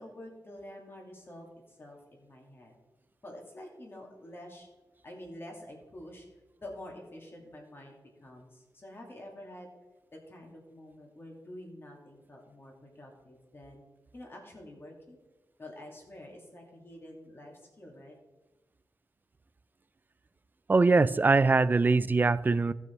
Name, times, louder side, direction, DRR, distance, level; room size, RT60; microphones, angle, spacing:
voice 1, 0.0-2.7 3.2-4.7 5.0-6.3 6.6-9.7 10.1-13.8 14.1-15.2 15.6-18.2, left 1 dB, 30° left, 0 dB, 2.4 m, -48 dB
voice 2, 20.7-22.7, right 3 dB, 25° right, 17 dB, 0.3 m, -22 dB
15.0 x 6.1 x 4.5 m, 1.1 s
wide cardioid pair, 130°, 8 cm